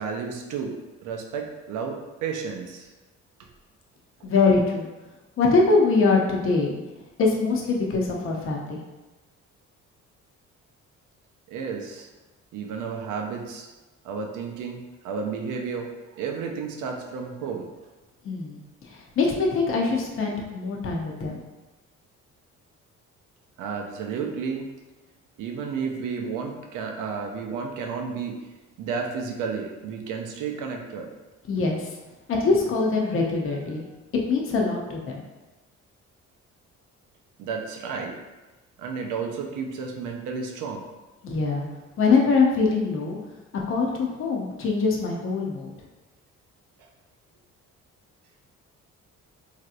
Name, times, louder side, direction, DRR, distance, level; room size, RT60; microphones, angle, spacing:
voice 1, 0.0-2.9 11.5-12.1 12.5-13.7 14.0-14.8 15.0-17.7 23.6-24.7 25.4-28.4 28.8-31.1 37.4-38.2 38.8-40.9 46.8-46.9, right 5 dB, 85° right, 2 dB, 0.6 m, -32 dB
voice 2, 4.2-4.9 5.4-6.8 7.2-8.8 18.2-18.6 19.2-21.4 31.5-31.8 32.3-33.8 34.3-35.2 41.2-41.7 42.0-43.2 43.7-45.7, left 4 dB, 45° left, -1 dB, 0.6 m, -23 dB
3.3 x 2.8 x 2.4 m, 1.1 s
cardioid pair, 90°, 30 cm